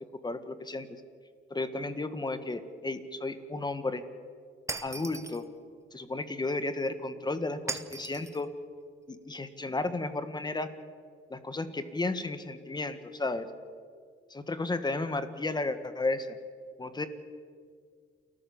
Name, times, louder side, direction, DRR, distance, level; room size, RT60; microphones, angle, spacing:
voice 1, 0.2-0.9 1.5-4.0 4.8-5.5 5.9-8.5 9.1-10.7 11.3-13.5 14.3-16.3 16.8-17.1, left 2 dB, 20° left, 10 dB, 1.7 m, -33 dB
Shatter, 4.7-5.4 7.7-8.4, right 3 dB, 15° right, 1.3 m, -38 dB
29.0 x 14.5 x 7.2 m, 2.1 s
cardioid pair, 90°, 20 cm